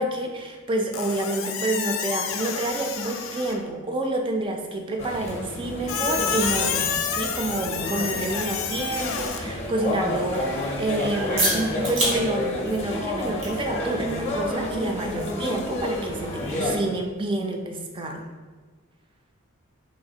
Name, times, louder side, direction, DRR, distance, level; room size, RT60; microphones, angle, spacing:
voice 1, 0.0-18.2, right 2 dB, 25° right, 3 dB, 0.3 m, -28 dB
Squeak, 0.9-3.7 5.9-9.4, left 7 dB, 70° left, 0.4 m, -29 dB
sound 1, 3.1-18.3, right 1 dB, 85° right, 1.4 m, -36 dB
sound 2, 5.0-16.8, left 1 dB, 30° left, 0.6 m, -30 dB
4.0 x 2.9 x 2.7 m, 1.4 s
head